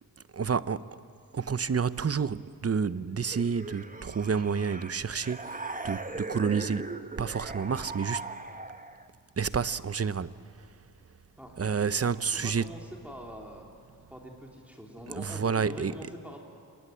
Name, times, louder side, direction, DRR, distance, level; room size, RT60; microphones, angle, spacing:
voice 1, 0.3-0.9 1.3-8.3 9.4-10.7 11.6-12.7 15.1-16.0, right 6 dB, 40° right, 0.7 m, -30 dB
sound 1, 3.2-9.1, right 3 dB, 20° right, 1.2 m, -39 dB
voice 2, 12.0-13.7 14.1-16.4, equal, 5° right, 3.0 m, -44 dB
27.0 x 21.0 x 9.1 m
wide cardioid pair, 75°, 38 cm